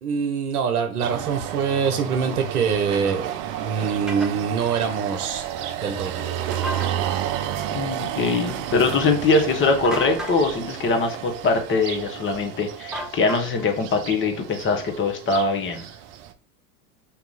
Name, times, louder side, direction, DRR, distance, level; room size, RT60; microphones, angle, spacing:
voice 1, 0.0-3.3 3.6-5.4 5.8-6.8, right 6 dB, 80° right, 6 dB, 0.9 m, -25 dB
sound 1, 1.0-16.3, right 11 dB, 50° right, 0.6 m, -31 dB
sound 2, 4.1-4.3 6.5-6.9 9.8-10.4 12.9-13.7, equal, ahead, 0.4 m, -33 dB
voice 2, 7.7-15.8, left 3 dB, 25° left, 4 dB, 1.1 m, -22 dB
3.8 x 2.8 x 3.9 m, 0.40 s
hypercardioid pair, 90°, 44 cm